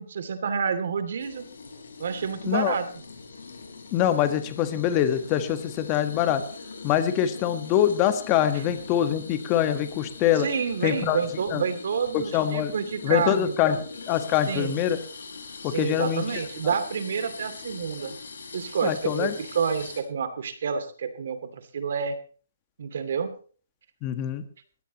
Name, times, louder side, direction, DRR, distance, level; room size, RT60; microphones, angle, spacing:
voice 1, 0.0-1.4 2.0-2.9 10.4-13.8 14.5-14.8 15.6-18.2 18.5-22.2 22.8-23.3, right 6 dB, 60° right, 10 dB, 2.6 m, -29 dB
sound 1, 1.2-20.0, left 4 dB, 85° left, 5.2 m, -42 dB
voice 2, 2.5-2.8 3.9-6.4 6.8-10.5 10.8-11.2 11.5-11.6 12.1-12.7 13.0-15.0 15.6-16.2 18.8-19.3 24.0-24.4, left 10 dB, 25° left, 9 dB, 1.5 m, -24 dB
20.0 x 16.0 x 3.0 m, 0.41 s
hypercardioid pair, 165°, 0 cm